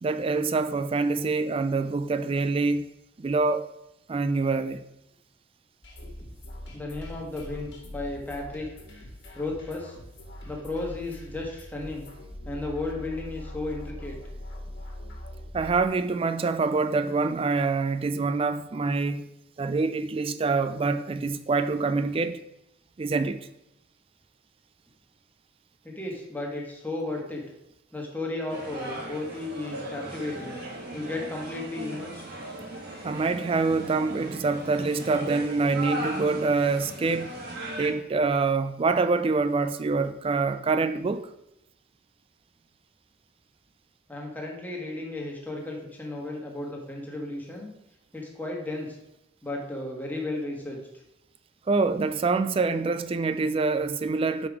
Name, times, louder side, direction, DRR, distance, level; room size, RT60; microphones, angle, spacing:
voice 1, 0.0-2.8 3.2-3.7 4.1-4.8 15.5-19.3 19.6-22.4 23.0-23.4 33.0-37.4 37.8-41.3 51.7-54.5, right 3 dB, 30° right, 0.3 m, -25 dB
sound 1, 5.8-15.9, left 1 dB, 65° left, 1.6 m, -42 dB
voice 2, 6.7-8.7 9.3-10.0 10.4-12.1 12.4-14.2 25.8-27.4 27.9-30.6 30.9-32.2 44.1-47.7 48.1-49.0 49.4-50.8, left 2 dB, 10° left, 1.2 m, -34 dB
sound 2, 28.5-37.9, right 1 dB, 55° right, 1.6 m, -37 dB
5.2 x 4.8 x 4.8 m
head